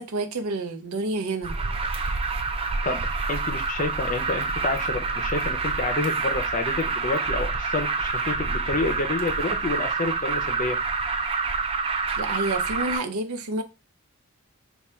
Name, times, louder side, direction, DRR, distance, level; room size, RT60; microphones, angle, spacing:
voice 1, 0.0-1.5 12.2-13.6, right 2 dB, 85° right, 0.6 m, -29 dB
Alarm, 1.4-13.0, right 4 dB, 25° right, 0.3 m, -27 dB
voice 2, 3.3-10.8, left 3 dB, 35° left, 0.5 m, -29 dB
3.5 x 2.3 x 4.3 m
head